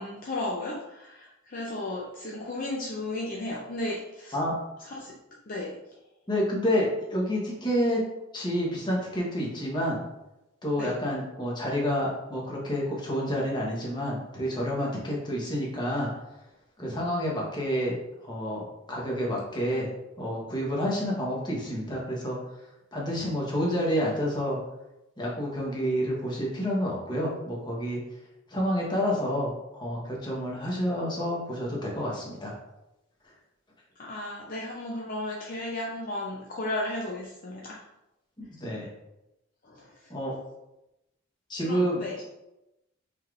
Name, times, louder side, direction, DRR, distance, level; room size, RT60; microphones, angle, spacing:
voice 1, 0.0-4.3 4.9-5.1 5.5-5.7 10.8-10.9 34.0-37.8 39.7-39.8 41.6-42.1, left 1 dB, 40° left, -3 dB, 0.5 m, -34 dB
voice 2, 6.3-8.0 8.3-10.0 10.6-16.1 16.8-18.0 18.2-19.9 20.2-22.4 22.9-24.6 25.2-28.0 28.5-32.5 38.4-38.9 40.1-40.3 41.5-42.0, equal, 20° left, -3 dB, 1.1 m, -29 dB
5.4 x 3.3 x 2.5 m, 0.92 s
head